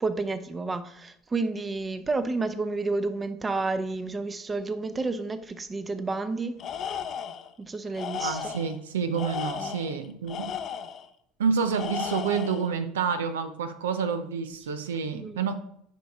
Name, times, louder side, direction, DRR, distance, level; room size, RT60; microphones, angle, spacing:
voice 1, 0.0-6.6 7.6-8.5 9.5-9.8 15.1-15.4, right 3 dB, 20° right, 11 dB, 0.7 m, -30 dB
Tools, 6.6-7.5 7.9-8.8 9.1-11.1 11.7-12.7, left 8 dB, 45° left, 0.6 m, -34 dB
voice 2, 8.1-10.5 11.4-15.5, right 6 dB, 85° right, 10 dB, 0.6 m, -28 dB
7.6 x 5.0 x 3.5 m, 0.71 s
hypercardioid pair, 85°, 0 cm